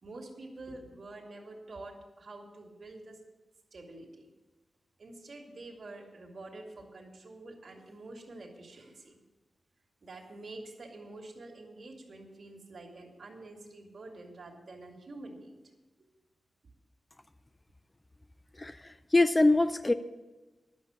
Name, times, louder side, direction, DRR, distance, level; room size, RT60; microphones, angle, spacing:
voice 1, 0.0-3.2 3.7-4.3 5.0-9.2 10.0-15.5, right 2 dB, 55° right, 0 dB, 2.4 m, -47 dB
voice 2, 18.6-19.9, left 2 dB, 20° left, 11 dB, 0.4 m, -24 dB
11.0 x 6.9 x 8.8 m, 1.2 s
wide cardioid pair, 130°, 0 cm